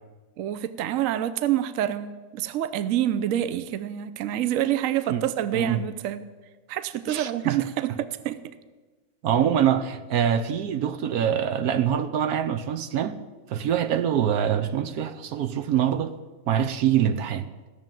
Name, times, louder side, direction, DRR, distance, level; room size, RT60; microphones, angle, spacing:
voice 1, 0.4-6.3 6.7-8.4, right 11 dB, 65° right, 1.0 m, -27 dB
voice 2, 7.1-7.6 9.2-13.2 13.5-16.1 16.5-17.5, right 9 dB, 80° right, 1.3 m, -24 dB
16.0 x 7.0 x 9.0 m
omnidirectional pair, 1.6 m